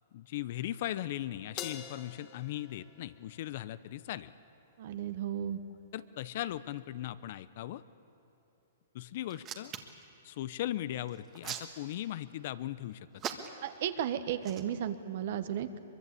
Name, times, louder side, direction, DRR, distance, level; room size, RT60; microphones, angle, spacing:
voice 1, 0.1-4.3 5.9-7.8 8.9-9.7 10.2-13.1, left 13 dB, 55° left, 15 dB, 0.8 m, -38 dB
Crash cymbal, 1.6-4.1, left 9 dB, 40° left, 1.9 m, -46 dB
voice 2, 4.8-5.6 13.6-15.7, right 10 dB, 55° right, 11 dB, 1.4 m, -34 dB
Hands, 9.3-10.0 11.1-12.2 13.2-13.8 14.4-14.6, right 9 dB, 30° right, 1.8 m, -40 dB
23.5 x 22.5 x 8.5 m, 2.9 s
hypercardioid pair, 135°, 0 cm